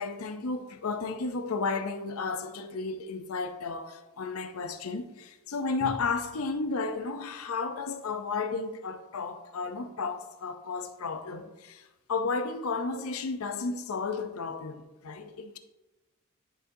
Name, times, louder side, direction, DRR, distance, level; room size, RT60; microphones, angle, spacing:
voice 1, 0.0-15.6, left 4 dB, 80° left, 0.6 m, -33 dB
10.0 x 3.9 x 2.7 m
head